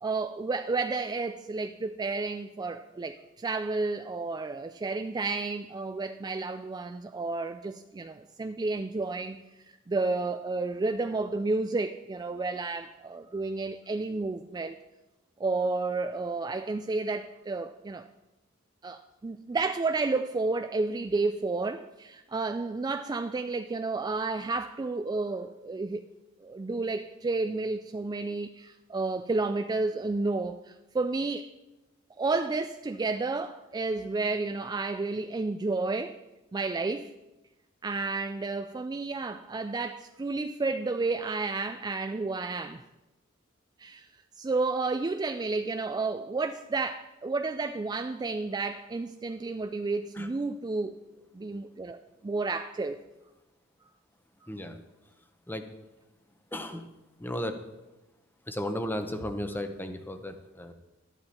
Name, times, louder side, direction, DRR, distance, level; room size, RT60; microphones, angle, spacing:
voice 1, 0.0-9.5 9.9-14.8 15.4-18.1 18.8-26.0 26.4-31.5 32.2-36.1 36.5-37.1 37.8-42.8 43.8-44.1 44.4-51.0 51.3-53.0, right 3 dB, 20° right, 8 dB, 0.3 m, -31 dB
voice 2, 54.5-54.8 55.5-55.7 56.5-56.9 57.2-57.6 58.5-60.7, left 1 dB, 10° left, 7 dB, 0.8 m, -35 dB
12.5 x 10.5 x 4.3 m, 1.0 s
head